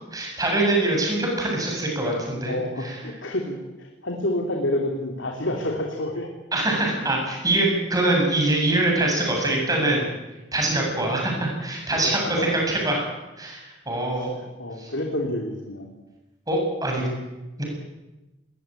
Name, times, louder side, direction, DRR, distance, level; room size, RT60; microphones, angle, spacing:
voice 1, 0.1-2.9 6.5-10.0 10.5-13.0 13.4-14.3 14.8-14.9 16.5-17.1 17.6-17.7, right 2 dB, 20° right, 0 dB, 7.7 m, -24 dB
voice 2, 2.4-6.3 11.9-12.5 14.2-15.9, left 1 dB, 85° left, 1 dB, 3.0 m, -29 dB
20.5 x 19.5 x 9.0 m, 1.0 s
head